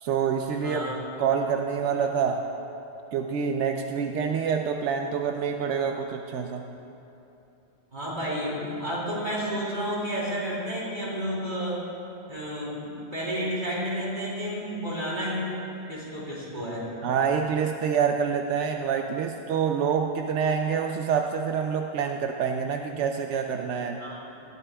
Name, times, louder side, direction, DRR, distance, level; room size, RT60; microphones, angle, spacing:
voice 1, 0.0-0.8 1.2-2.4 3.1-6.6 17.0-24.0, right 7 dB, 85° right, 4 dB, 0.9 m, -26 dB
voice 2, 0.6-0.9 7.9-11.8 12.3-15.5 15.9-16.8 24.0-24.4, equal, 45° right, -7 dB, 3.5 m, -31 dB
19.0 x 13.0 x 2.3 m, 2.9 s
omnidirectional pair, 1.2 m